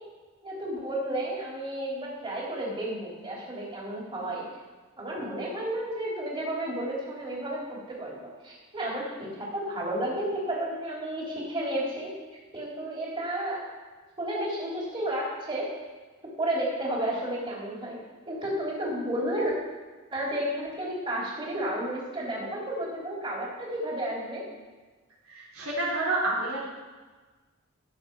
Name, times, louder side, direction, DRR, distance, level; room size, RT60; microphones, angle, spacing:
voice 1, 0.4-4.4 5.0-8.2 8.4-13.7 14.2-15.7 16.4-18.0 18.3-19.5 20.1-24.4, right 1 dB, 25° right, -4 dB, 3.1 m, -32 dB
voice 2, 25.3-26.6, right 2 dB, 85° right, -5 dB, 4.1 m, -29 dB
16.0 x 7.0 x 4.6 m, 1.3 s
head